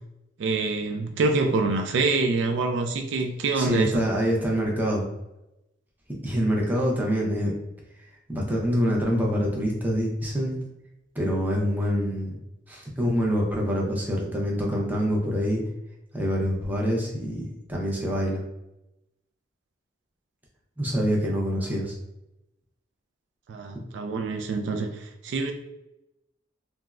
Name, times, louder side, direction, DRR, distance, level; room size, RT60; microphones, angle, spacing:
voice 1, 0.4-4.1 23.5-25.5, right 3 dB, 70° right, 4 dB, 0.3 m, -26 dB
voice 2, 3.5-5.0 6.2-7.5 8.3-10.6 11.1-12.4 12.7-15.6 16.1-18.4 20.8-21.9, equal, 10° right, -2 dB, 0.5 m, -25 dB
3.4 x 2.0 x 2.3 m, 0.91 s
head